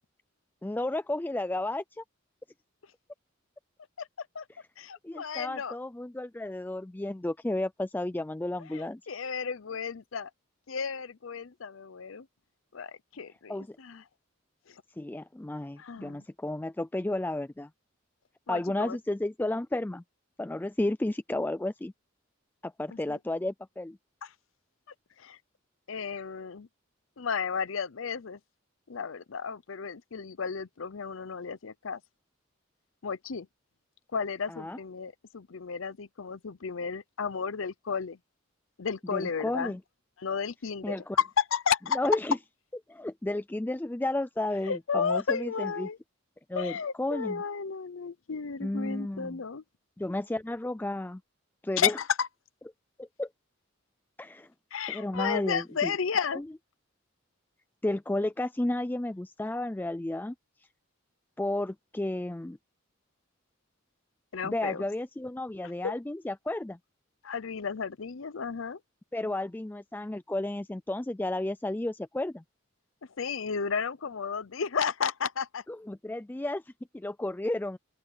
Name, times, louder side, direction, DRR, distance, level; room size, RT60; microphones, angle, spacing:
voice 1, 0.6-2.0 5.0-9.0 13.5-13.8 15.0-17.7 18.5-20.0 20.4-21.9 22.6-24.0 34.5-34.8 39.1-39.8 40.8-41.2 41.9-42.4 42.9-45.9 46.5-47.4 48.6-49.4 50.0-51.2 51.6-52.0 53.0-53.3 54.2-54.5 54.9-55.9 56.3-56.4 57.8-60.3 61.4-62.6 64.4-66.8 69.1-72.4 75.8-76.6 76.9-77.8, left 1 dB, 10° left, 0.3 m, -32 dB
voice 2, 4.0-4.5 4.8-5.8 8.6-10.3 10.7-12.3 12.7-14.0 14.7-14.8 15.8-16.2 18.5-19.0 23.1-23.2 24.2-24.3 25.2-25.4 25.9-26.7 27.2-28.4 28.9-32.0 33.0-33.5 34.1-38.2 38.8-39.8 40.2-42.0 44.7-46.0 46.5-49.6 51.8-52.3 54.7-56.4 64.3-64.8 65.8-65.9 67.2-68.8 73.2-75.6, left 6 dB, 70° left, 0.7 m, -33 dB
open air
head